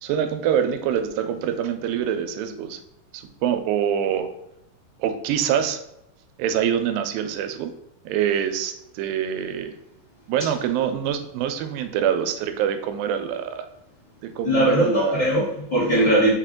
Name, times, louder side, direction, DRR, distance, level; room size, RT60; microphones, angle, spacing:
voice 1, 0.0-2.8 3.1-4.3 5.0-5.8 6.4-7.7 8.1-9.8 10.3-13.7 14.2-15.4, right 9 dB, 85° right, 8 dB, 2.2 m, -25 dB
voice 2, 14.4-16.3, right 1 dB, 60° left, -9 dB, 1.1 m, -20 dB
5.6 x 2.4 x 3.6 m, 0.82 s
omnidirectional pair, 4.0 m